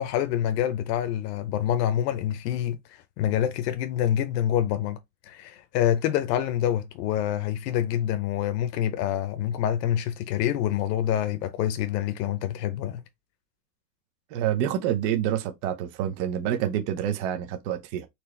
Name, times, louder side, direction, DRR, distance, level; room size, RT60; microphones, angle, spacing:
voice 1, 0.0-5.0 5.3-13.0, left 11 dB, 80° left, 0.9 m, -26 dB
voice 2, 14.3-18.1, right 10 dB, 45° right, 0.9 m, -27 dB
4.4 x 3.1 x 3.2 m
supercardioid pair, 180°, 48 cm